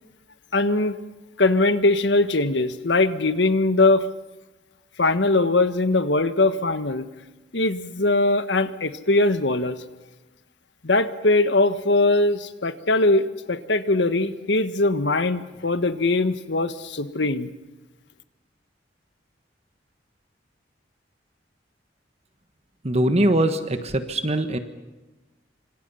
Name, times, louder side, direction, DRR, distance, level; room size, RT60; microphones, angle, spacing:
voice 1, 0.5-1.0 1.4-4.1 5.0-7.0 7.5-9.8 10.8-17.5, left 2 dB, 75° left, 11 dB, 1.5 m, -21 dB
voice 2, 22.8-24.6, right 1 dB, 35° right, 8 dB, 1.4 m, -22 dB
27.5 x 25.5 x 5.7 m, 1.1 s
head